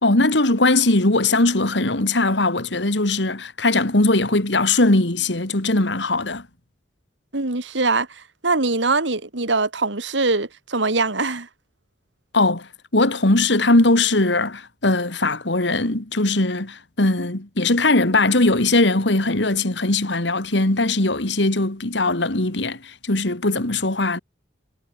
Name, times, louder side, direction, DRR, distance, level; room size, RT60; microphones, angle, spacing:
voice 1, 0.0-6.4 12.3-24.2, left 2 dB, 75° left, 2.5 m, -20 dB
voice 2, 7.3-11.5, right 3 dB, 80° right, 2.4 m, -22 dB
head